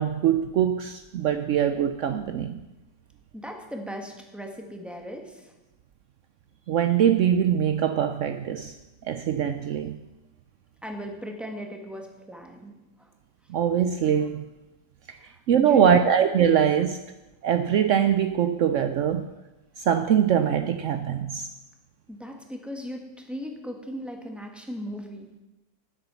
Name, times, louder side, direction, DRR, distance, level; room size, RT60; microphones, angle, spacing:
voice 1, 0.0-2.6 6.7-8.7 9.1-10.0 13.5-14.4 15.1-15.2 15.5-17.0 17.4-19.3 19.8-21.5, right 9 dB, 85° right, 8 dB, 0.6 m, -23 dB
voice 2, 3.3-5.5 10.8-12.7 15.1-16.1 22.1-25.3, equal, ahead, 2 dB, 1.3 m, -37 dB
10.5 x 8.0 x 6.9 m, 1.0 s
omnidirectional pair, 1.9 m